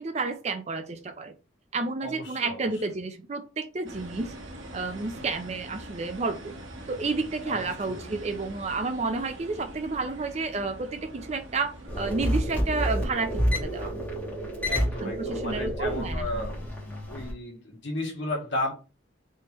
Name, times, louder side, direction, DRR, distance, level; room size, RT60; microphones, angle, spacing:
voice 1, 0.0-1.3 1.7-4.3 4.7-6.5 6.9-13.9 15.0-16.3, right 3 dB, 35° right, 0.4 m, -31 dB
voice 2, 2.0-2.7 7.5-8.2 14.7-16.7 17.1-18.7, left 1 dB, 65° left, 1.5 m, -34 dB
sound 1, 3.9-13.6, right 1 dB, 85° right, 1.0 m, -44 dB
sound 2, 11.9-17.3, equal, 10° left, 1.4 m, -29 dB
3.5 x 2.9 x 4.3 m
head